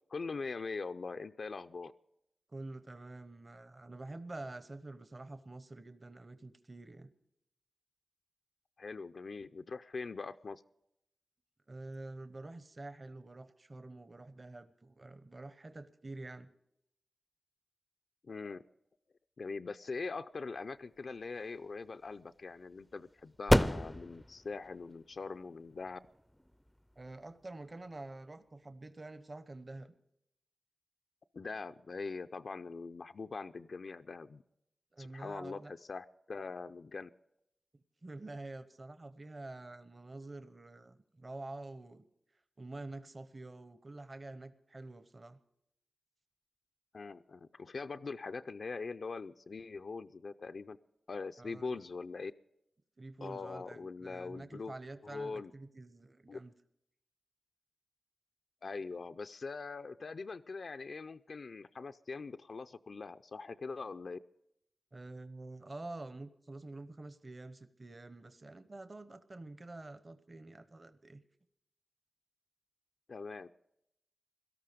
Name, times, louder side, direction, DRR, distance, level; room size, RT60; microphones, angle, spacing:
voice 1, 0.1-1.9 8.8-10.6 18.2-18.6 19.4-26.0 31.3-34.4 35.0-37.1 46.9-50.8 51.1-52.3 53.2-54.7 55.0-55.5 56.3-56.4 58.6-64.2 73.1-73.5, left 4 dB, 65° left, 9 dB, 0.4 m, -42 dB
voice 2, 2.5-7.1 11.7-16.5 27.0-29.9 34.9-35.7 37.7-42.1 42.6-45.4 51.4-51.9 53.0-56.5 64.9-71.2, right 2 dB, 40° right, 12 dB, 0.9 m, -48 dB
sound 1, 21.0-28.2, equal, 5° left, 0.4 m, -35 dB
17.5 x 13.0 x 5.1 m, 0.79 s
wide cardioid pair, 70°, 0 cm